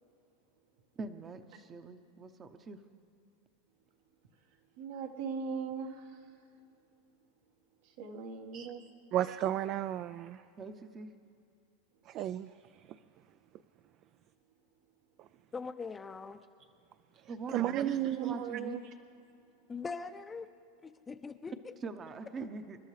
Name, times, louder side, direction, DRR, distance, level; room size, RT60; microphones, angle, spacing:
voice 1, 1.0-2.8 10.6-11.1 17.3-18.8 21.8-22.8, right 4 dB, 25° right, 9 dB, 0.8 m, -42 dB
voice 2, 4.8-6.2 7.8-8.9 18.2-18.8, right 6 dB, 70° right, 3 dB, 1.6 m, -40 dB
voice 3, 9.1-10.4 12.1-12.5 17.5-18.4, right 12 dB, 40° right, 14 dB, 0.3 m, -33 dB
voice 4, 15.5-16.4 19.7-20.5 20.8-21.7, left 4 dB, 15° left, 9 dB, 0.6 m, -41 dB
27.5 x 12.0 x 3.3 m, 2.5 s
supercardioid pair, 135°, 0 cm